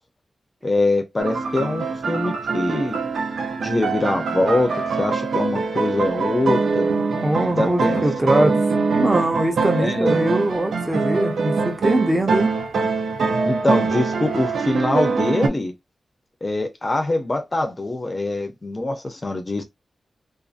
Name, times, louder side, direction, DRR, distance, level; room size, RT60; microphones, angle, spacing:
voice 1, 0.6-3.0 3.6-6.9 7.5-8.6 9.8-10.2 13.4-15.7 16.4-19.6, left 2 dB, 25° left, 0.6 m, -23 dB
sound 1, 1.2-15.5, right 4 dB, 85° right, 0.5 m, -23 dB
voice 2, 7.2-8.6 9.0-12.5, right 1 dB, 20° right, 0.7 m, -22 dB
2.6 x 2.4 x 2.4 m
wide cardioid pair, 110°, 0 cm